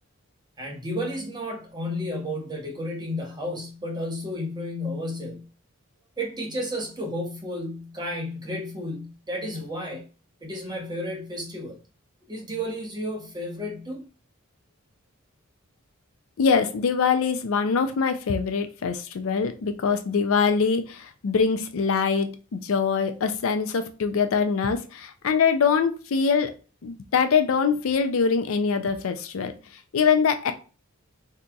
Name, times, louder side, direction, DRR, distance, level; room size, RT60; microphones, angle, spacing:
voice 1, 0.6-5.5 6.2-10.1 10.4-11.8 12.3-14.0, equal, 20° right, 0.8 m, -32 dB
voice 2, 16.4-26.5 26.8-29.5 29.9-30.5, left 5 dB, 75° left, 0.4 m, -23 dB
3.8 x 2.8 x 2.3 m
head